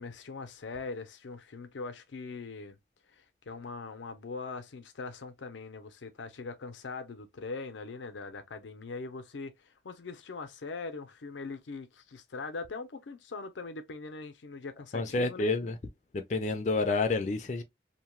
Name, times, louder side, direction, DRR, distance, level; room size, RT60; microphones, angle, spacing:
voice 1, 0.0-2.8 3.1-15.5, left 4 dB, 90° left, 0.5 m, -41 dB
voice 2, 14.9-15.8 16.1-17.6, left 3 dB, 40° left, 0.4 m, -29 dB
2.8 x 2.1 x 3.0 m
head